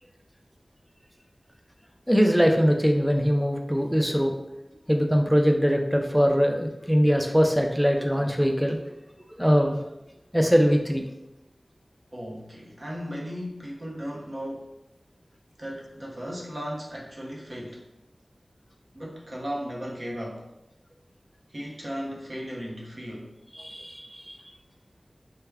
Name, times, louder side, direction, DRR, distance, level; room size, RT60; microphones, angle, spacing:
voice 1, 2.1-4.3 4.9-8.8 9.3-9.8 10.3-11.0 23.5-24.4, equal, ahead, 3 dB, 0.4 m, -22 dB
voice 2, 12.1-14.7 15.6-17.8 18.9-20.5 21.5-23.3, equal, 50° right, -3 dB, 0.7 m, -36 dB
3.3 x 2.1 x 3.4 m, 0.90 s
wide cardioid pair, 65°, 0 cm